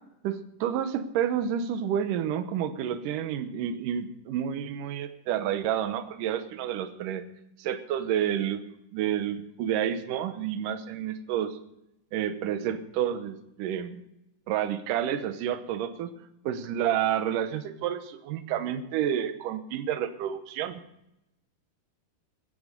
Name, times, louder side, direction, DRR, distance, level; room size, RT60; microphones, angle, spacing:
voice 1, 0.2-7.2 7.6-8.6 8.9-11.6 12.1-14.0 14.5-16.1 16.4-20.8, right 9 dB, 80° right, 10 dB, 1.9 m, -29 dB
15.5 x 13.5 x 5.2 m, 0.84 s
omnidirectional pair, 5.1 m